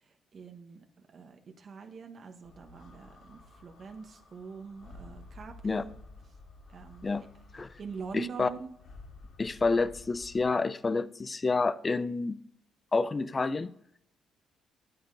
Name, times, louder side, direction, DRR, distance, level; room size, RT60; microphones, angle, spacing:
voice 1, 0.0-5.9 6.7-7.1 7.8-8.7, right 5 dB, 50° right, 1.2 m, -44 dB
sound 1, 2.4-10.4, left 2 dB, 70° left, 2.5 m, -52 dB
voice 2, 8.1-8.5 9.4-12.4 12.9-13.7, left 3 dB, 30° left, 0.5 m, -29 dB
8.9 x 8.8 x 3.8 m
cardioid pair, 90°, 0 cm